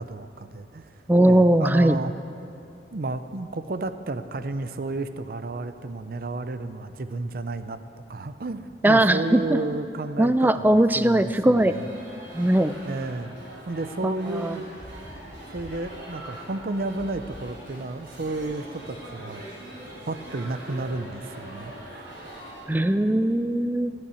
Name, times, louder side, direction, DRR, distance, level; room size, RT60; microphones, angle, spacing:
voice 1, 0.0-0.9 1.3-2.1 2.9-7.8 8.1-11.9 12.9-13.4 13.7-14.7 15.5-19.5 20.1-22.1, right 2 dB, 55° right, 11 dB, 0.6 m, -32 dB
voice 2, 1.1-2.0 8.8-9.6 10.2-11.7 12.3-12.7 14.0-14.6 22.7-23.9, right 1 dB, 10° right, 11 dB, 0.4 m, -20 dB
sound 1, 11.6-22.6, right 1 dB, 85° right, 4.0 m, -42 dB
14.0 x 8.7 x 8.2 m, 2.6 s
head